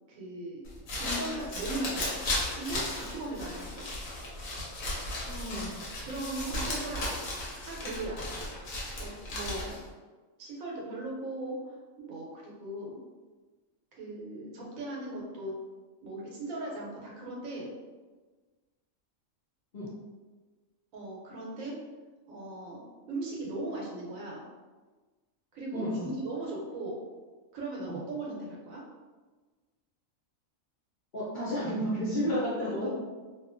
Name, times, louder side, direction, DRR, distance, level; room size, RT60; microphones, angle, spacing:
voice 1, 0.1-0.6 0.9-2.2 2.5-3.9 6.0-7.1 7.6-8.3 9.0-9.8 10.4-13.0 13.9-15.5 16.0-17.7 20.9-21.8 22.3-24.5 25.5-27.0 27.5-28.8 32.2-32.3 32.7-32.9, right 2 dB, 80° right, -3 dB, 1.1 m, -38 dB
sound 1, 0.6-9.9, left 1 dB, 90° left, 1.2 m, -35 dB
voice 2, 5.3-5.8 19.7-19.9 25.7-26.1 27.9-28.0 31.1-32.9, equal, 50° left, -8 dB, 0.6 m, -32 dB
2.9 x 2.3 x 2.5 m, 1.3 s
omnidirectional pair, 1.4 m